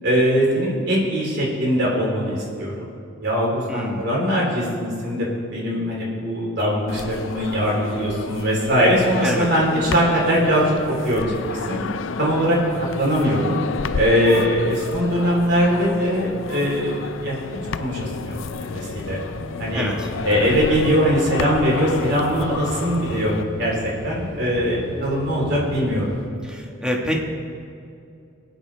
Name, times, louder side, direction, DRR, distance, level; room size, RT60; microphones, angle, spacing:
voice 1, 0.0-2.8 3.2-10.6 11.0-11.8 12.2-12.6 13.0-13.6 13.9-17.4 17.8-19.2 19.6-19.9 20.2-23.3 23.6-23.7 24.0-26.1, equal, 60° right, -4 dB, 3.6 m, -21 dB
voice 2, 3.7-4.0 9.2-9.5 19.7-20.1 26.4-27.1, equal, 5° right, -1 dB, 1.4 m, -26 dB
sound 1, 6.9-23.4, left 5 dB, 70° left, 0.4 m, -31 dB
sound 2, 17.5-26.3, equal, 30° left, 3.3 m, -36 dB
23.5 x 9.0 x 3.4 m, 2.5 s
head